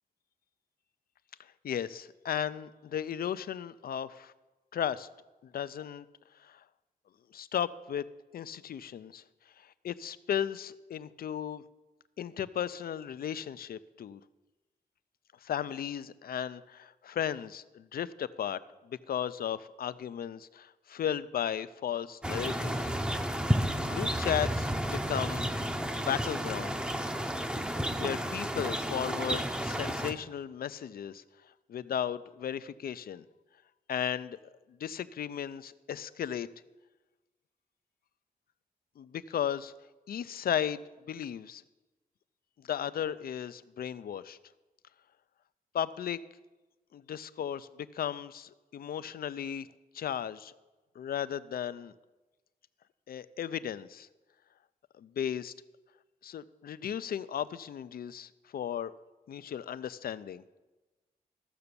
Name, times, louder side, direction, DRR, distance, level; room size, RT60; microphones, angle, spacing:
voice 1, 1.4-4.3 4.7-5.1 5.4-6.1 6.4-6.6 7.3-8.0 8.3-9.2 9.6-11.6 12.2-14.2 15.4-22.9 23.8-25.5 25.9-26.8 27.9-31.2 31.7-33.2 33.9-34.4 34.8-36.5 39.0-39.7 40.1-40.8 41.1-41.6 42.6-44.4 45.7-46.2 46.9-47.7 47.9-49.7 49.9-50.5 51.0-51.9 53.1-54.1 55.0-55.5 56.2-58.9 59.3-60.4, left 9 dB, 70° left, 15 dB, 0.5 m, -35 dB
sound 1, 22.2-30.1, equal, 5° right, 0.7 m, -32 dB
14.0 x 7.0 x 6.8 m, 1.1 s
wide cardioid pair, 140°, 16 cm